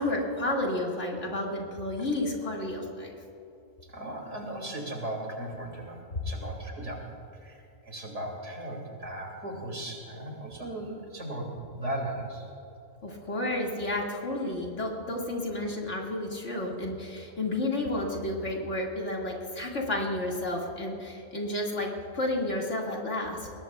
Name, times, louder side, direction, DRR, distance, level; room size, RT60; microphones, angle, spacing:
voice 1, 0.0-3.2 6.1-6.2 13.0-23.5, left 1 dB, 55° left, -2 dB, 2.5 m, -31 dB
voice 2, 3.9-7.0 7.4-7.6 7.8-11.5 11.7-12.5, right 1 dB, 55° right, 0 dB, 2.9 m, -37 dB
22.0 x 19.0 x 2.4 m, 2.8 s
omnidirectional pair, 1.5 m